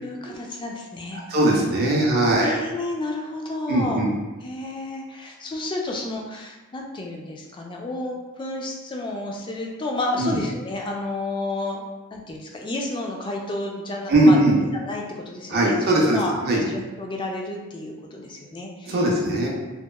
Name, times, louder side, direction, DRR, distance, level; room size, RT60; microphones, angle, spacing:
voice 1, 0.0-1.2 2.2-4.0 4.4-11.8 12.1-14.4 14.7-19.0, left 2 dB, 20° left, 0 dB, 0.3 m, -31 dB
voice 2, 1.3-2.5 3.7-4.1 10.1-10.4 14.1-14.6 15.5-16.6 18.9-19.5, right 1 dB, 45° right, -2 dB, 0.5 m, -20 dB
2.8 x 2.3 x 2.2 m, 1.2 s
head